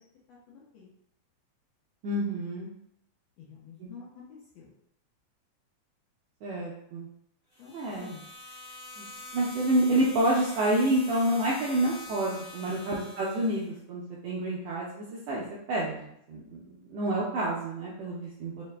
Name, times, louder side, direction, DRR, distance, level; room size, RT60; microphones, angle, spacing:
voice 1, 0.3-0.9 3.4-4.7 7.6-8.3 12.6-12.8, left 6 dB, 75° left, -5 dB, 1.6 m, -49 dB
voice 2, 2.0-2.7 3.8-3.9 6.4-7.1 7.7-8.1 9.0-9.1 9.3-15.4 15.7-16.6 16.9-18.6, right 1 dB, 80° right, -5 dB, 1.5 m, -28 dB
sound 1, 7.5-13.7, left 2 dB, 50° left, 1.3 m, -45 dB
4.8 x 2.1 x 3.3 m, 0.74 s
omnidirectional pair, 3.6 m